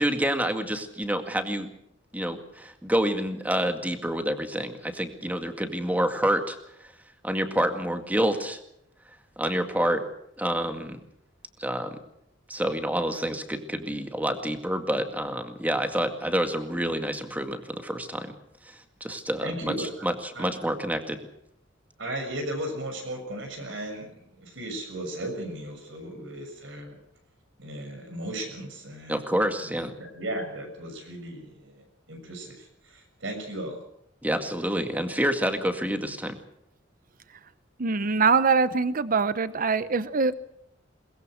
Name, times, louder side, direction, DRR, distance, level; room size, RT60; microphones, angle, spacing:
voice 1, 0.0-1.7 2.1-6.6 7.2-8.6 9.4-10.0 10.4-11.0 11.6-12.0 12.5-18.3 18.7-21.2 26.2-26.3 29.1-29.9 34.2-36.4, equal, 10° right, 6 dB, 2.0 m, -28 dB
voice 2, 19.4-19.9 20.3-20.5 22.0-27.0 27.6-29.2 29.6-29.7 30.1-33.8, right 1 dB, 70° right, 5 dB, 6.7 m, -36 dB
voice 3, 37.8-40.3, right 4 dB, 45° right, 14 dB, 0.8 m, -23 dB
22.0 x 21.0 x 6.4 m, 0.76 s
head